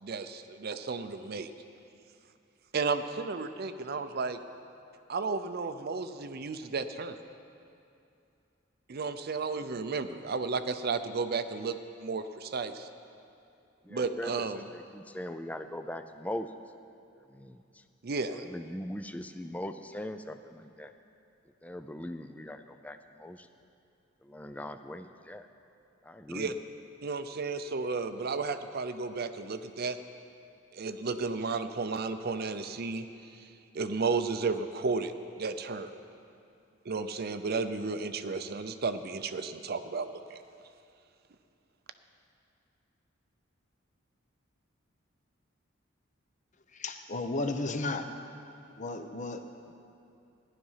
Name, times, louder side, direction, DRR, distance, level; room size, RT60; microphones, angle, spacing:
voice 1, 0.0-1.5 2.7-4.4 5.1-7.2 8.9-12.9 13.9-14.7 18.0-18.4 26.3-26.5 27.0-30.0 30.7-33.0 33.4-33.5 33.7-35.1 35.4-35.9 36.9-40.4, right 4 dB, 50° right, 9 dB, 0.5 m, -33 dB
voice 2, 13.8-14.5 14.7-16.5 17.3-17.8 18.3-20.9 21.6-23.5 24.2-25.5 26.0-26.5, left 1 dB, 5° left, 8 dB, 0.4 m, -40 dB
voice 3, 46.7-48.1 48.8-49.7, left 2 dB, 40° left, 7 dB, 0.8 m, -34 dB
15.0 x 11.0 x 5.7 m, 2.6 s
head